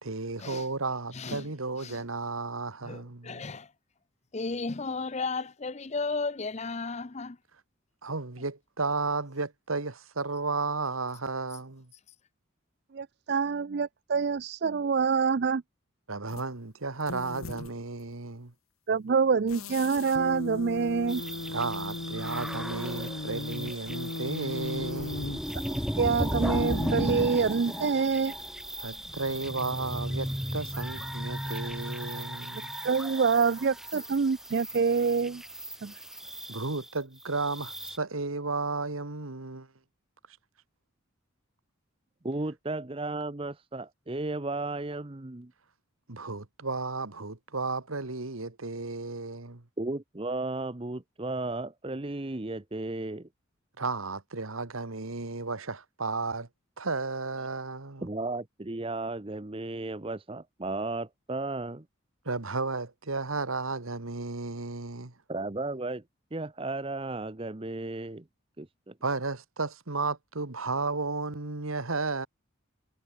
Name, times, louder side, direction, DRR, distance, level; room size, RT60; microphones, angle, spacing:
voice 1, 0.0-3.4 8.0-11.9 16.1-18.5 21.5-25.4 28.8-32.7 36.5-39.7 46.1-49.6 53.8-56.5 56.8-58.1 62.3-65.1 69.0-72.3, right 3 dB, 85° right, 1.9 m, -33 dB
voice 2, 1.1-1.5 1.8-2.0 2.8-3.7 4.3-7.4, left 4 dB, 30° left, 0.6 m, -34 dB
voice 3, 12.9-15.6 18.9-21.2 26.0-28.3 32.8-35.4 35.8-35.9, right 5 dB, 50° right, 0.4 m, -26 dB
sound 1, 16.3-16.5 17.0-17.8 19.5-27.9, left 2 dB, 85° left, 1.6 m, -38 dB
sound 2, 21.1-38.0, equal, ahead, 1.0 m, -36 dB
voice 4, 42.2-45.5 49.8-53.3 58.0-61.8 65.3-66.0 66.3-68.2 68.6-68.9, right 2 dB, 25° right, 0.8 m, -34 dB
head